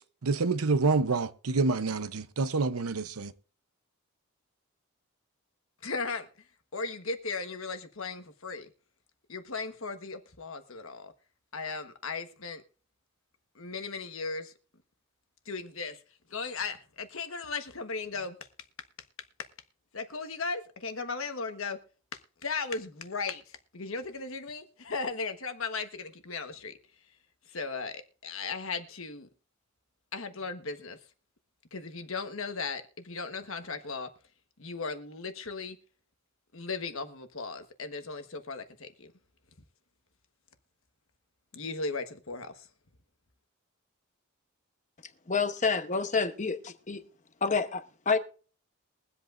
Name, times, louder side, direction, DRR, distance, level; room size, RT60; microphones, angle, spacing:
voice 1, 0.0-3.3, right 3 dB, 85° right, 0.8 m, -28 dB
voice 2, 5.8-6.3 6.7-8.7 9.3-11.1 11.5-12.6 13.5-14.5 15.4-16.0 16.3-18.4 19.9-21.8 22.1-26.7 27.5-29.3 30.1-31.0 31.7-34.1 34.6-35.8 36.5-39.1 41.5-42.7, left 4 dB, 65° left, 1.3 m, -37 dB
voice 3, 45.3-47.0 47.4-48.2, left 4 dB, 35° left, 0.9 m, -28 dB
22.5 x 8.1 x 2.5 m
head